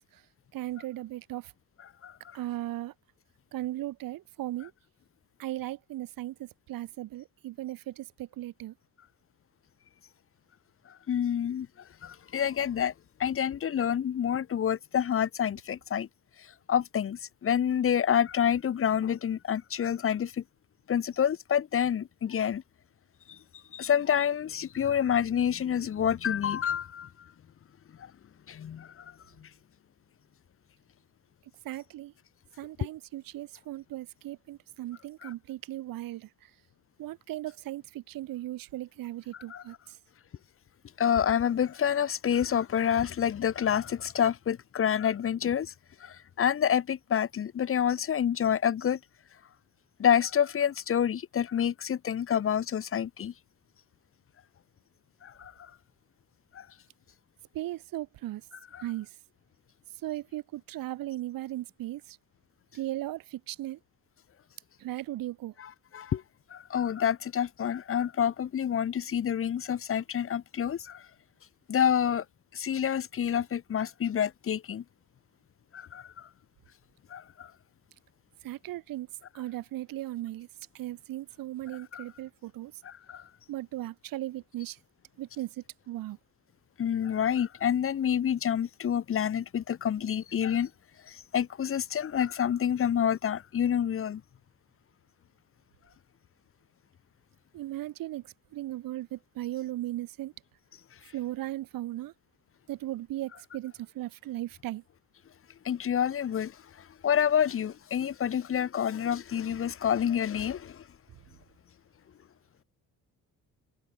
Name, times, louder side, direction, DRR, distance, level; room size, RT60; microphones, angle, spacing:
voice 1, 0.5-1.5 2.3-2.9 3.5-4.7 5.4-8.7 31.6-32.1 32.6-36.3 37.0-39.7 57.5-58.4 58.8-59.1 60.0-62.2 62.7-63.8 64.8-65.5 78.4-79.1 79.3-80.5 80.7-82.7 83.5-84.8 85.2-86.2 97.5-98.2 98.5-100.3 101.1-102.1 102.7-104.8, right 15 dB, 75° right, 1.1 m, -37 dB
voice 2, 11.1-11.7 12.0-12.9 13.2-16.1 16.7-20.4 20.9-22.6 23.3-23.4 23.7-27.1 28.5-29.0 29.4-29.5 35.2-35.3 39.5-39.6 41.0-45.7 46.0-49.0 50.0-53.3 55.2-55.7 56.5-56.6 58.7-58.8 65.6-66.2 66.5-71.0 71.7-72.2 72.5-74.8 75.7-76.3 77.1-77.5 81.9-82.0 82.8-83.2 86.8-90.7 91.1-94.2 105.6-106.5 107.0-110.8, left 9 dB, 40° left, 1.1 m, -28 dB
cardioid pair, 145°, 34 cm